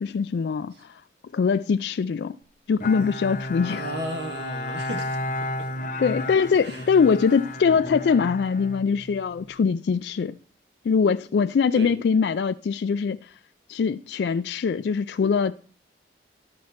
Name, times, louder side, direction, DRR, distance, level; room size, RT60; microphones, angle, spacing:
voice 1, 0.0-0.7 1.3-2.4 2.7-3.9 6.0-10.4 10.8-13.2 13.7-15.5, left 5 dB, 70° left, 0.3 m, -22 dB
Bowed string instrument, 2.8-9.5, left 1 dB, 45° left, 0.9 m, -33 dB
voice 2, 3.6-5.2 5.6-5.7 6.6-6.9 11.7-12.0, right 1 dB, 75° right, 1.5 m, -34 dB
12.5 x 4.3 x 5.7 m
head